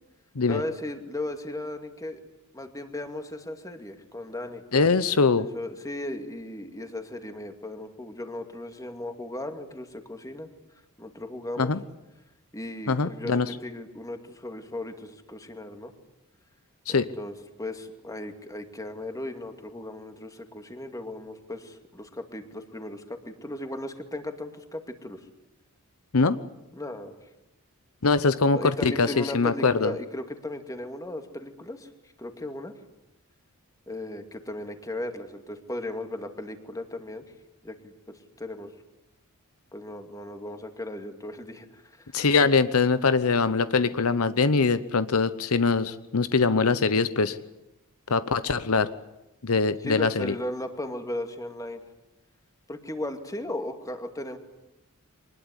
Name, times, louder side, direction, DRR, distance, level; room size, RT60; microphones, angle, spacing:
voice 1, 0.4-2.2 2.5-4.6 5.4-10.5 11.0-11.7 12.5-15.9 16.9-25.2 26.8-27.2 28.5-31.9 32.2-32.7 33.9-37.2 37.6-38.7 39.7-42.1 49.8-51.8 52.7-54.4, left 1 dB, 15° left, 6 dB, 2.3 m, -36 dB
voice 2, 4.7-5.5 11.6-11.8 12.9-13.5 16.9-17.1 26.1-26.4 28.0-29.9 42.1-47.4 48.1-48.9 49.4-50.3, left 4 dB, 70° left, 13 dB, 0.9 m, -23 dB
24.0 x 20.0 x 9.8 m, 0.94 s
head